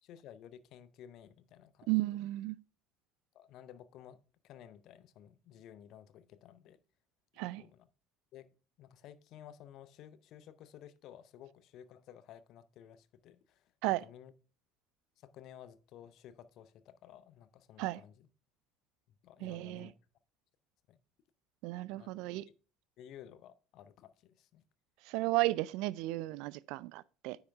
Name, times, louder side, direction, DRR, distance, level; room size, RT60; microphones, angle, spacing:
voice 1, 0.0-1.9 3.3-4.2 4.4-6.8 7.5-7.9 8.3-8.5 8.8-13.7 14.0-14.3 15.2-18.3 19.2-19.9 20.9-21.0 21.9-22.1 22.5-22.6 23.0-24.6, left 10 dB, 50° left, 0.7 m, -54 dB
voice 2, 1.9-2.6 7.4-7.6 13.8-14.0 17.8-18.0 19.4-19.9 21.6-22.4 25.1-27.4, right 19 dB, 55° right, 0.3 m, -34 dB
9.6 x 5.9 x 3.4 m
figure-of-eight pair, 65°, 0 cm